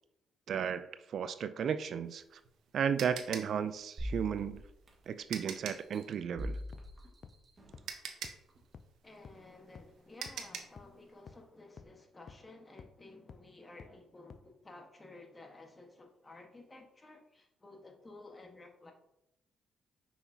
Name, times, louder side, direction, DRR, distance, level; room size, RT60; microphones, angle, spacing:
voice 1, 0.5-2.4 2.7-4.6 5.1-6.6, right 7 dB, 60° right, 12 dB, 0.3 m, -34 dB
sound 1, 2.1-5.9 7.3-7.4 7.9-10.8, right 7 dB, 80° right, 0.8 m, -44 dB
sound 2, 4.0-5.3 5.8-7.9 8.5-8.6, equal, 30° right, 1.6 m, -42 dB
sound 3, 6.7-6.8 7.2-7.3 7.7-7.8 8.2-8.3 8.7-8.8 9.2-9.3 9.8-9.9 10.3-10.4 10.8-10.9 11.3-11.4 11.8-11.9 12.3-12.4 12.8-12.9 13.3-13.4 13.8-13.9 14.3-14.4, left 6 dB, 50° left, 0.4 m, -50 dB
voice 2, 9.0-18.9, left 2 dB, 25° left, 3 dB, 1.3 m, -54 dB
5.9 x 5.9 x 2.8 m, 0.83 s
cardioid pair, 90°, 0 cm